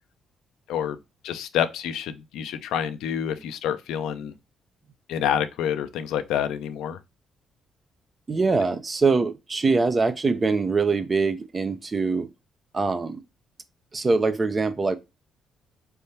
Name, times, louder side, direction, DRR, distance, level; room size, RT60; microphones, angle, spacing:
voice 1, 1.2-4.3 5.1-7.0, left 9 dB, 90° left, 0.5 m, -28 dB
voice 2, 8.3-12.3 12.7-13.2 13.9-15.0, right 4 dB, 30° right, 0.7 m, -23 dB
4.4 x 3.4 x 2.7 m
cardioid pair, 90°, 0 cm